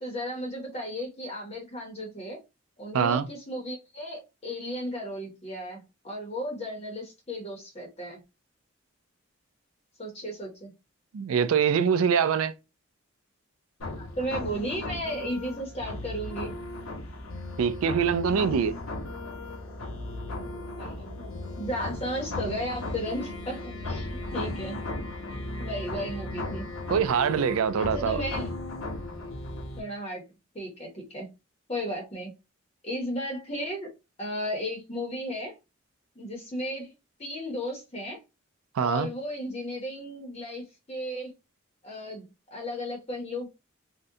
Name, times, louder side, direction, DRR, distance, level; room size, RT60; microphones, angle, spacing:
voice 1, 0.0-2.4 2.8-8.2 10.0-10.7 14.0-16.6 20.8-21.3 21.6-24.8 25.6-26.7 27.8-28.5 29.8-30.2 30.5-31.3 31.7-32.4 32.8-33.9 34.2-35.5 36.2-36.9 37.2-38.2 38.8-41.3 41.8-43.5, equal, 30° left, 0.7 m, -34 dB
voice 2, 2.9-3.3 11.1-12.5 17.6-18.7 26.9-28.2 38.8-39.1, right 7 dB, 90° right, 0.4 m, -24 dB
sound 1, 13.8-29.8, left 2 dB, 90° left, 0.8 m, -36 dB
3.6 x 2.1 x 2.7 m
head